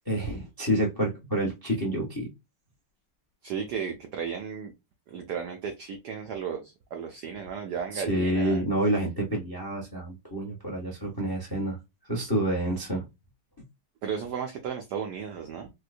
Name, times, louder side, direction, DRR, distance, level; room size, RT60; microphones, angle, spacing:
voice 1, 0.1-2.3 7.9-11.8 12.1-13.0, right 1 dB, 35° left, 0.3 m, -28 dB
voice 2, 3.4-4.7 5.1-8.6 14.0-15.7, right 7 dB, 90° right, 0.9 m, -34 dB
4.5 x 2.1 x 2.5 m
omnidirectional pair, 2.4 m